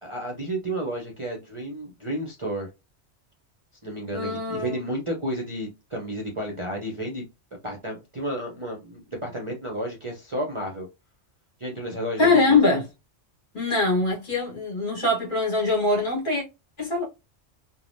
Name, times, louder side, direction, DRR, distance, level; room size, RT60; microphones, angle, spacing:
voice 1, 0.0-2.7 3.8-7.2 7.6-10.9 11.6-12.6, right 1 dB, 35° right, 0.6 m, -32 dB
voice 2, 4.1-4.8 12.2-12.8 13.5-16.4 16.8-17.0, left 3 dB, 45° left, 1.6 m, -22 dB
3.3 x 2.2 x 2.6 m
omnidirectional pair, 1.2 m